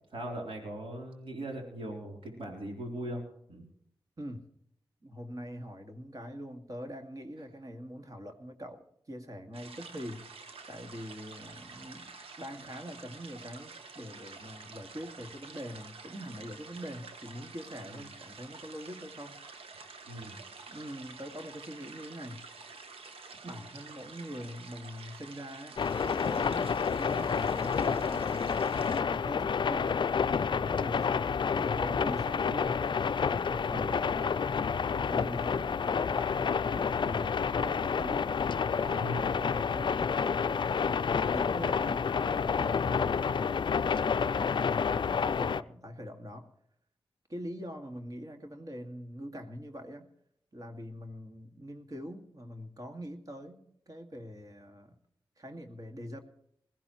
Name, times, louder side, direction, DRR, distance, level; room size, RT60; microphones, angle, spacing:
voice 1, 0.1-3.2 3.5-3.6 18.0-18.1 20.1-20.4 33.7-34.0 39.0-39.4, right 1 dB, 70° right, 0 dB, 3.7 m, -39 dB
voice 2, 5.0-10.2 10.7-19.4 20.7-22.4 23.4-28.5 29.1-30.1 30.5-32.8 33.3-38.3 38.8-40.4 41.2-43.7 44.1-46.5 47.3-50.1 50.5-55.0 55.4-56.2, equal, 40° right, 4 dB, 2.2 m, -43 dB
sound 1, 9.5-29.0, right 4 dB, 85° right, 1.3 m, -49 dB
sound 2, 25.8-45.6, left 6 dB, 55° left, 0.4 m, -29 dB
20.5 x 15.0 x 3.1 m, 0.72 s
cardioid pair, 50°, 9 cm